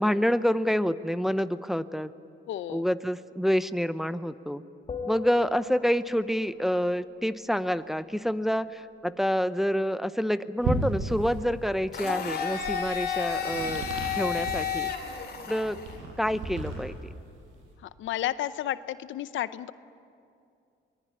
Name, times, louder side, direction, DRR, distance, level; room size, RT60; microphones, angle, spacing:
voice 1, 0.0-2.1 2.7-4.6 5.0-13.9 14.2-14.9 15.5-15.8 16.2-16.9, equal, ahead, 12 dB, 0.7 m, -27 dB
voice 2, 2.5-2.8 18.0-19.7, left 12 dB, 75° left, 14 dB, 0.7 m, -32 dB
sound 1, 4.9-6.4 12.1-15.4, left 6 dB, 30° left, 2.1 m, -38 dB
sound 2, 10.6-17.7, right 2 dB, 90° right, 6.7 m, -35 dB
Domestic sounds home sounds, 11.9-16.0, left 7 dB, 55° left, 3.6 m, -32 dB
23.5 x 19.5 x 9.8 m, 2.5 s
cardioid pair, 90°, 20 cm